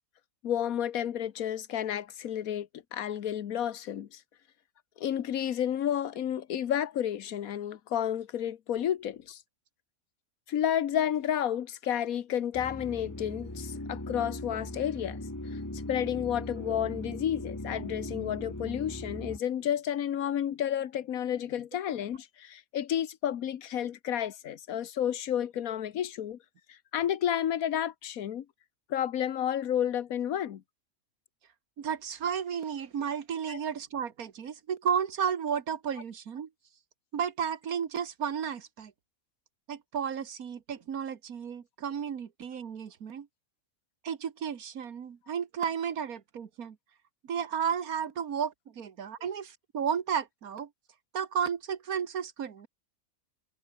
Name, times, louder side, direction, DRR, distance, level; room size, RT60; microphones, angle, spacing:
voice 1, 0.4-4.2 5.0-9.4 10.5-15.2 15.5-15.6 15.9-26.4 26.7-28.4 28.9-30.6 33.5-33.6, left 10 dB, 75° left, 1.4 m, -31 dB
sound 1, 12.5-19.4, left 1 dB, 15° left, 1.9 m, -39 dB
voice 2, 31.8-36.5 37.1-38.9 39.7-43.3 44.0-46.8 47.3-50.7 51.1-52.7, right 7 dB, 85° right, 1.9 m, -33 dB
omnidirectional pair, 1.5 m